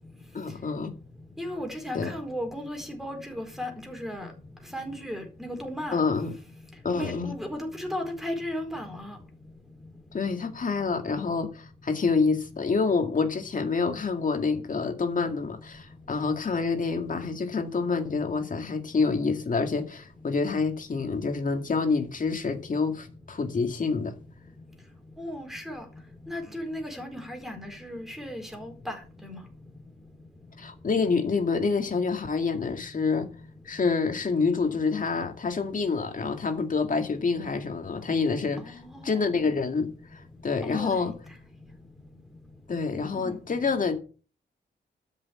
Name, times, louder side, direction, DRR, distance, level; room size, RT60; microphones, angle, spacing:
voice 1, 0.3-0.9 1.9-2.1 5.9-6.4 6.8-7.3 10.1-24.2 30.6-33.3 33.6-41.1 42.7-44.0, left 4 dB, 45° left, 2.1 m, -27 dB
voice 2, 1.4-4.3 4.7-6.0 6.9-9.2 25.2-25.8 26.3-29.0 29.2-29.4 38.7-39.3 40.6-41.1 43.1-43.3, left 1 dB, ahead, 4.4 m, -35 dB
13.0 x 6.2 x 8.5 m
wide cardioid pair, 125°, 19 cm